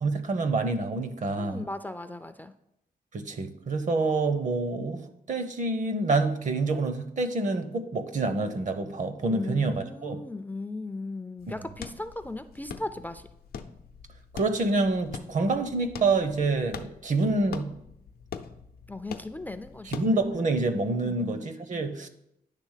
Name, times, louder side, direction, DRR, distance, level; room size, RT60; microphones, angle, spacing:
voice 1, 0.0-1.6 3.1-5.0 5.3-10.2 14.3-17.7 19.9-22.1, right 3 dB, 55° right, 9 dB, 0.8 m, -27 dB
voice 2, 1.4-2.5 9.3-13.3 18.9-20.0 21.0-21.5, left 2 dB, 10° left, 9 dB, 0.3 m, -37 dB
sound 1, 11.4-20.4, left 7 dB, 80° left, 0.6 m, -44 dB
10.0 x 3.4 x 6.5 m, 0.78 s
wide cardioid pair, 125°, 16 cm